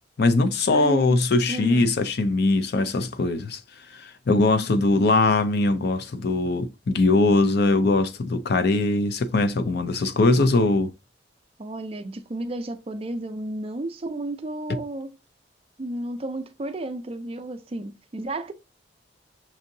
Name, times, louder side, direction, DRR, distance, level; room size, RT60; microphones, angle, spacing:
voice 1, 0.2-3.6 3.9-10.9, left 2 dB, 60° left, 0.5 m, -21 dB
voice 2, 0.7-1.2 1.5-1.9 11.6-15.1 15.8-18.5, right 1 dB, 30° right, 0.4 m, -32 dB
6.1 x 2.7 x 2.6 m
head